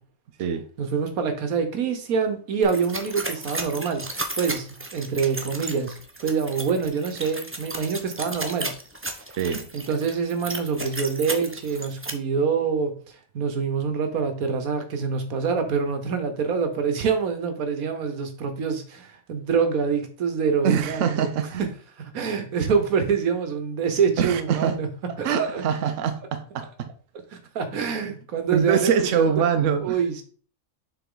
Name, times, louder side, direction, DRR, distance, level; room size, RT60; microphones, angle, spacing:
voice 1, 0.8-4.1 4.4-8.7 9.0-9.2 9.7-12.9 13.3-21.3 21.6-21.7 22.0-24.9 25.2-25.7 27.3-29.5 29.8-30.2, right 6 dB, 85° right, 1.4 m, -26 dB
sound 1, 2.6-12.1, right 2 dB, 15° right, 0.5 m, -34 dB
voice 2, 9.4-9.7 20.6-21.6 24.2-24.8 25.2-26.9 28.5-30.0, right 7 dB, 65° right, 1.0 m, -24 dB
7.0 x 4.2 x 3.8 m
omnidirectional pair, 1.5 m